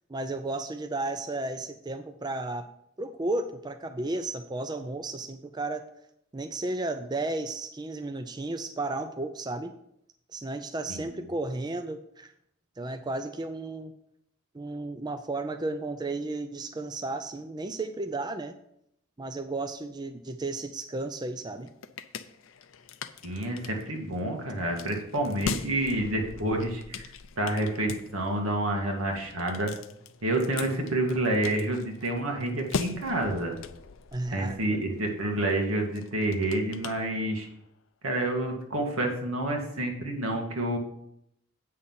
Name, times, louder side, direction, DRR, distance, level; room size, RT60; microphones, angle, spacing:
voice 1, 0.1-2.7 3.0-5.8 6.3-9.8 10.3-12.3 12.8-13.9 14.5-18.5 19.2-21.7 34.1-34.8, right 2 dB, 20° right, 8 dB, 0.4 m, -33 dB
sound 1, 21.4-37.6, left 5 dB, 65° left, 0.6 m, -41 dB
voice 2, 23.2-27.0 27.4-29.7 30.2-33.6 34.3-37.5 38.0-40.8, right 1 dB, 85° right, 1 dB, 2.1 m, -28 dB
8.6 x 6.5 x 5.7 m, 0.75 s
head